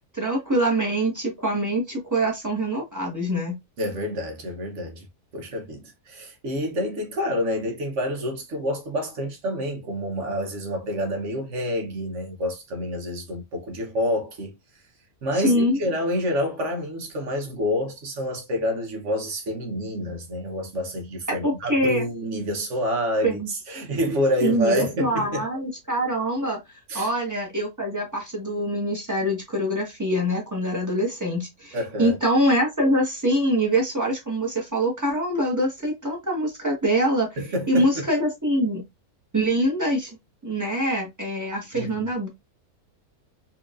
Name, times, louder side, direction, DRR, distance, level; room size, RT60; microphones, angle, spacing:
voice 1, 0.1-3.6 15.3-15.8 21.4-22.0 23.2-23.5 24.4-37.3 37.7-38.8 39.3-40.2 40.4-42.3, right 1 dB, 15° right, 1.2 m, -24 dB
voice 2, 3.8-5.1 5.3-14.5 15.2-25.5 26.9-27.1 31.7-32.2 37.4-38.1 41.7-42.1, equal, 60° right, 1.3 m, -28 dB
4.3 x 2.8 x 2.5 m
omnidirectional pair, 1.5 m